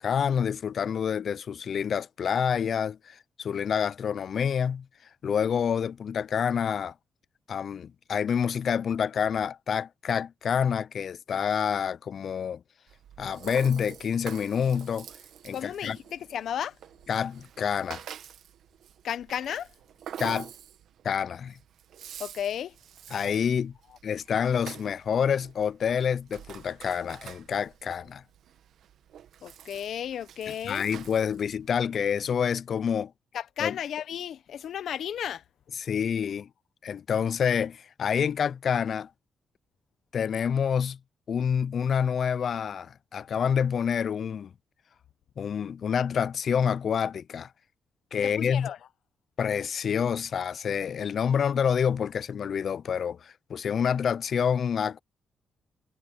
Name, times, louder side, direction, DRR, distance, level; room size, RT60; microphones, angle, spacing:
voice 1, 0.0-4.9 5.2-6.9 7.5-12.6 13.2-15.1 15.4-16.0 17.1-18.0 20.2-20.5 21.0-21.6 23.1-23.7 24.0-28.2 30.6-33.1 33.6-33.8 35.8-36.5 36.8-39.1 40.1-41.0 41.3-44.5 45.4-47.5 48.1-48.7 49.4-55.0, left 7 dB, 60° left, 0.3 m, -27 dB
Rattle (instrument), 12.9-31.8, right 9 dB, 80° right, 1.3 m, -47 dB
voice 2, 15.5-16.8 19.0-19.7 22.2-22.7 29.4-30.8 33.3-35.4 48.2-48.8, left 9 dB, 75° left, 0.7 m, -33 dB
cardioid pair, 105°, 0 cm